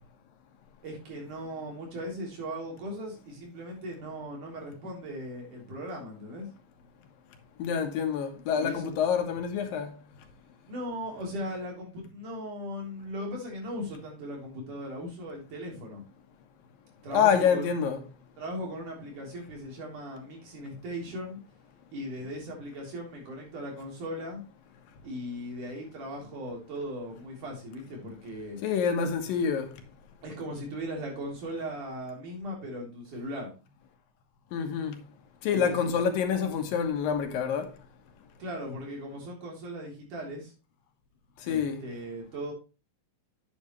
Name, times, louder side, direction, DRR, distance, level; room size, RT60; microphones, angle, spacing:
voice 1, 0.8-6.5 8.6-8.9 10.7-16.0 17.0-17.6 18.4-21.4 21.9-24.4 25.0-28.6 30.2-33.5 35.5-35.9 38.4-40.5 41.5-42.5, equal, 65° right, 5.1 m, -38 dB
voice 2, 7.6-9.9 17.1-18.0 28.6-29.7 34.5-35.0 35.4-37.7 41.5-41.8, left 7 dB, 85° left, 3.1 m, -27 dB
9.8 x 8.2 x 3.1 m
omnidirectional pair, 3.9 m